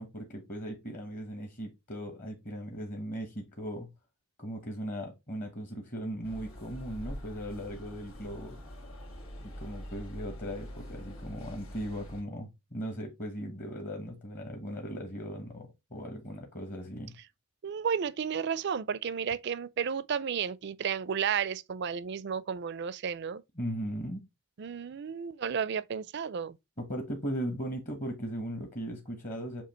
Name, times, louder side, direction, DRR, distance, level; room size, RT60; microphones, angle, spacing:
voice 1, 0.0-3.9 4.4-8.6 9.4-17.2 23.6-24.2 26.8-29.6, equal, 40° left, 1.4 m, -38 dB
sound 1, 6.2-12.2, equal, 85° left, 2.2 m, -44 dB
voice 2, 17.6-23.4 24.6-26.6, right 7 dB, 55° right, 0.4 m, -32 dB
7.6 x 2.8 x 4.4 m
head